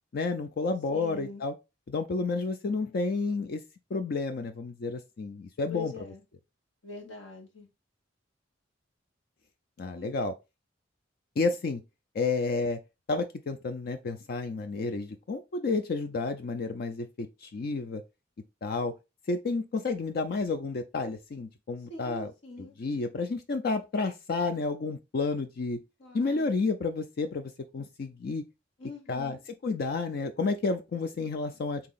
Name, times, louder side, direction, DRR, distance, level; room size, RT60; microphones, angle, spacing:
voice 1, 0.1-1.5 1.9-3.6 3.9-6.1 9.8-10.3 11.4-11.8 12.1-12.8 13.1-18.0 18.6-18.9 19.3-22.3 22.6-25.8 26.1-28.4 29.1-31.8, left 3 dB, 55° left, 0.4 m, -31 dB
voice 2, 0.9-1.4 5.7-6.2 6.8-7.7 9.9-10.2 21.9-22.7 26.0-26.6 28.8-29.4, left 3 dB, 90° left, 1.4 m, -43 dB
3.7 x 2.9 x 4.0 m
head